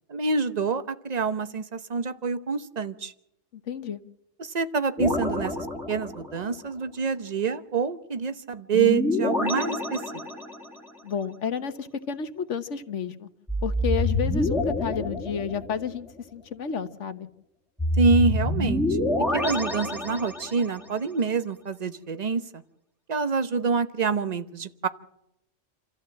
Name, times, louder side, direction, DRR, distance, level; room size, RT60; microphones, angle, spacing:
voice 1, 0.1-3.1 4.4-10.2 18.0-19.0 19.3-22.4 23.1-24.9, right 5 dB, 35° right, 11 dB, 1.0 m, -26 dB
voice 2, 3.5-4.0 11.0-13.3 13.6-16.1 16.3-17.3, left 6 dB, 70° left, 10 dB, 1.4 m, -31 dB
sound 1, 5.0-6.5 8.7-10.8 13.5-16.0 17.8-20.8, left 1 dB, ahead, 1.9 m, -27 dB
28.0 x 14.0 x 7.6 m, 0.85 s
omnidirectional pair, 1.3 m